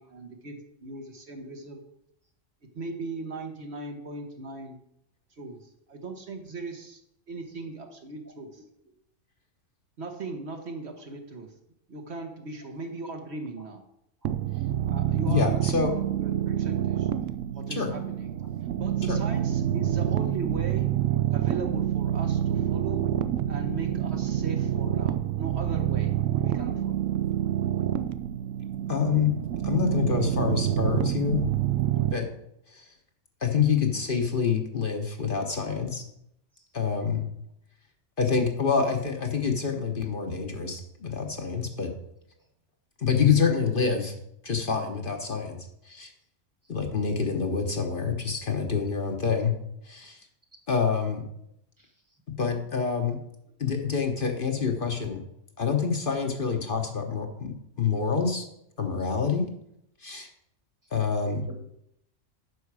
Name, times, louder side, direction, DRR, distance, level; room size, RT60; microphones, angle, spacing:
voice 1, 0.0-1.8 2.7-4.8 5.4-7.0 7.3-8.6 10.0-11.5 11.9-13.8 14.8-17.1 17.5-18.4 18.8-20.9 21.3-23.0 23.5-27.0, right 3 dB, 60° right, 4 dB, 1.4 m, -38 dB
voice 2, 8.3-8.6 14.2-14.3 22.7-22.8 36.6-36.7 45.3-45.4 51.8-51.9 61.5-61.6, right 1 dB, 15° right, 4 dB, 1.3 m, -51 dB
sound 1, 14.2-32.1, right 11 dB, 90° right, 0.9 m, -27 dB
voice 3, 15.3-15.9 17.8-17.9 19.1-19.2 28.9-29.3 29.6-31.4 32.1-32.3 32.7-32.8 33.4-36.1 36.7-37.3 38.2-41.9 43.0-44.1 44.4-45.6 45.8-46.1 46.7-49.5 49.9-50.2 50.7-51.2 52.4-53.2 53.6-55.2 55.6-58.4 58.8-59.5 60.0-60.3 60.9-61.4, left 6 dB, 45° left, 3 dB, 1.1 m, -26 dB
9.5 x 6.3 x 4.8 m, 0.76 s
omnidirectional pair, 1.3 m